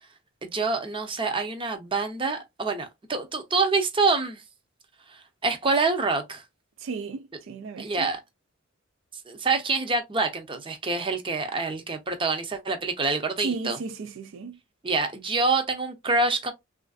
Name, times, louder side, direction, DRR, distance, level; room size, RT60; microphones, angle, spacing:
voice 1, 0.4-4.4 5.1-6.4 7.8-8.2 9.3-13.8 14.8-16.5, right 3 dB, 25° right, 0.6 m, -26 dB
voice 2, 6.8-8.1 13.4-14.6, right 4 dB, 70° right, 0.4 m, -34 dB
3.2 x 2.5 x 2.3 m
head